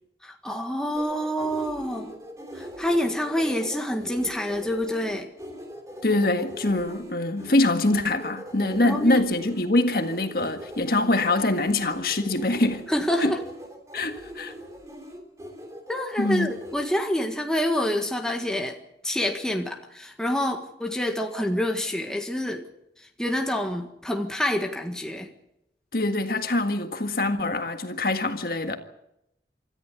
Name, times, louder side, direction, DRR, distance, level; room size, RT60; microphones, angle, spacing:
voice 1, 0.2-2.1 2.5-5.3 8.8-9.3 12.9-13.4 15.9-18.8 19.0-22.7 23.2-25.3, left 1 dB, 5° left, 1.6 m, -27 dB
sound 1, 1.0-17.0, equal, 20° right, 3.2 m, -41 dB
voice 2, 6.0-12.8 13.2-13.3 13.9-14.5 16.2-16.5 25.9-28.8, left 2 dB, 55° left, 1.8 m, -24 dB
26.0 x 14.0 x 8.3 m
head